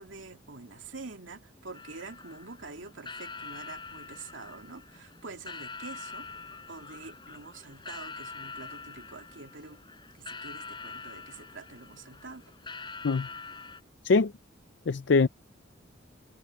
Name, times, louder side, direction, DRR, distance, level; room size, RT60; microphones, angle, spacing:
voice 1, 0.0-6.3 6.7-9.8 10.1-12.5, right 3 dB, 80° right, 2.5 m, -46 dB
sound 1, 1.7-13.8, left 4 dB, 25° left, 6.8 m, -45 dB
voice 2, 14.9-15.3, left 4 dB, 65° left, 0.5 m, -22 dB
head